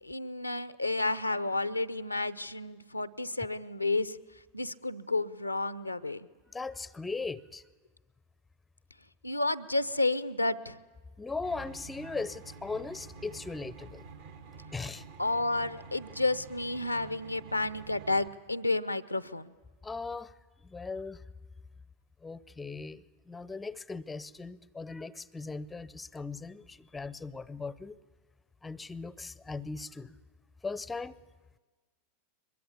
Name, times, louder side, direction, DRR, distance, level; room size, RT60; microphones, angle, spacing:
voice 1, 0.0-4.2 4.5-6.3 9.2-10.8 15.2-19.5, left 2 dB, 85° left, 15 dB, 0.7 m, -31 dB
voice 2, 6.5-7.6 11.2-14.1 14.7-15.0 19.8-20.3 20.6-21.2 22.2-28.0 28.6-30.2 30.6-31.2, left 4 dB, 10° left, 21 dB, 0.6 m, -39 dB
sound 1, 11.4-18.3, right 4 dB, 60° right, 1.7 m, -49 dB
23.0 x 21.5 x 8.5 m, 1.3 s
figure-of-eight pair, 90°, 0 cm